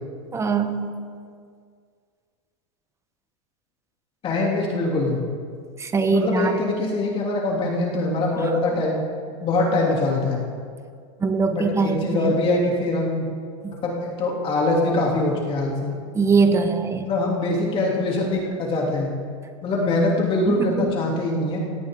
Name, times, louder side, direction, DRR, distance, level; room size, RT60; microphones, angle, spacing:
voice 1, 0.3-1.0 5.8-6.6 8.4-8.8 11.2-12.4 13.6-13.7 16.1-17.1 20.5-20.9, right 4 dB, 15° right, 8 dB, 1.2 m, -22 dB
voice 2, 4.2-5.2 6.0-9.1 9.4-10.4 11.5-13.3 13.7-15.9 17.1-19.1 19.6-21.6, left 2 dB, 35° left, -2 dB, 2.9 m, -23 dB
19.0 x 16.5 x 3.8 m, 2.1 s
supercardioid pair, 125°, 17 cm